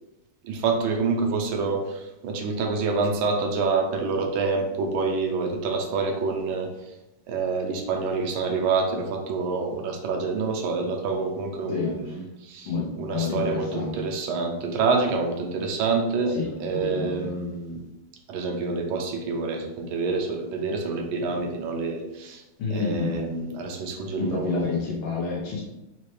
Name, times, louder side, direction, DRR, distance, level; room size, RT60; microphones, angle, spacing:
voice 1, 0.4-6.9 7.3-12.7 13.0-17.9 18.3-22.4 22.7-24.7, right 4 dB, 75° right, 2 dB, 1.4 m, -27 dB
voice 2, 11.7-12.2 12.6-14.0 16.3-17.3 22.6-23.2 24.2-25.6, left 4 dB, 75° left, -3 dB, 1.6 m, -29 dB
4.3 x 2.8 x 3.1 m, 0.95 s
omnidirectional pair, 2.4 m